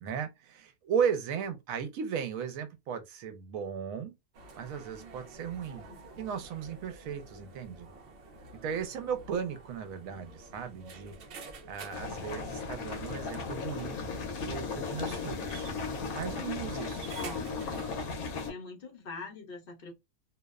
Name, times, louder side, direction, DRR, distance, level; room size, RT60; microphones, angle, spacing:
voice 1, 0.0-4.1 4.5-5.8 6.2-7.9 8.6-11.1 11.6-14.0 14.4-15.7 16.1-17.1, right 7 dB, 75° right, 1.0 m, -36 dB
sound 1, 4.3-17.9, right 3 dB, 60° right, 0.6 m, -49 dB
sound 2, 11.9-18.5, left 4 dB, 85° left, 1.1 m, -36 dB
voice 2, 17.1-17.8 18.5-19.9, left 4 dB, 50° left, 0.8 m, -43 dB
2.7 x 2.0 x 2.3 m
omnidirectional pair, 1.5 m